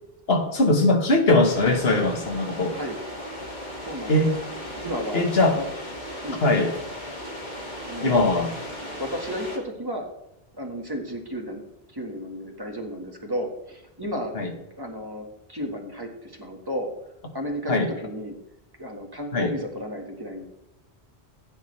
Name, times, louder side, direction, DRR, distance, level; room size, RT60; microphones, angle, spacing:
voice 1, 0.3-2.8 4.1-4.4 5.1-5.6 6.4-6.7 8.0-8.5 14.3-14.5 17.7-17.9 19.3-19.5, left 2 dB, 75° left, 5 dB, 1.6 m, -21 dB
sound 1, 1.4-9.6, equal, 45° left, 2.1 m, -36 dB
voice 2, 2.7-3.0 3.8-4.2 4.8-5.3 5.6-5.7 6.2-6.4 7.8-8.1 9.0-10.1 10.6-11.6 11.9-14.3 14.8-16.9 17.3-17.8 18.0-18.4 18.8-20.5, equal, 20° right, 2 dB, 1.7 m, -33 dB
15.0 x 9.1 x 3.3 m, 0.88 s
omnidirectional pair, 1.0 m